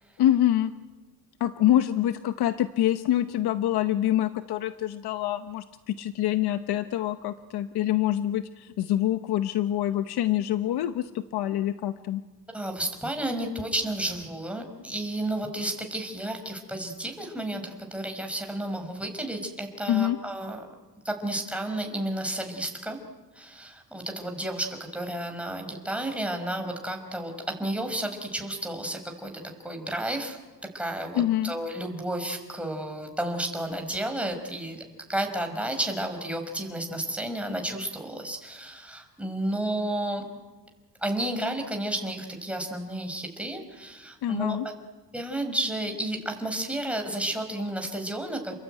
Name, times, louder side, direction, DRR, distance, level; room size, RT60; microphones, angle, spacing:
voice 1, 0.2-0.7 1.4-12.2 19.9-20.2 31.1-31.5 44.2-44.7, left 12 dB, 85° left, 10 dB, 1.0 m, -25 dB
voice 2, 12.5-20.7 21.0-23.0 23.3-29.3 29.6-30.4 30.7-34.8 35.1-40.2 41.0-44.6 45.1-48.5, right 1 dB, 5° right, 3 dB, 5.7 m, -32 dB
30.0 x 21.5 x 9.3 m, 1.3 s
cardioid pair, 95°, 38 cm